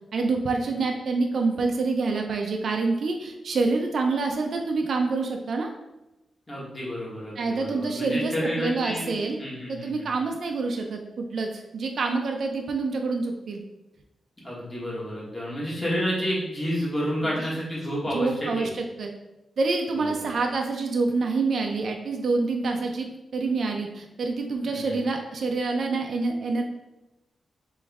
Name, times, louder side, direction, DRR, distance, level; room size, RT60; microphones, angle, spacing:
voice 1, 0.1-5.7 7.4-9.4 9.7-13.6 17.2-17.5 18.1-19.1 19.6-26.6, right 3 dB, 60° right, 2 dB, 0.4 m, -27 dB
voice 2, 6.5-9.1 9.4-10.1 14.4-18.7 19.9-20.3 24.6-25.0, equal, 15° left, -6 dB, 1.4 m, -30 dB
3.4 x 3.0 x 3.5 m, 0.99 s
wide cardioid pair, 120°, 0 cm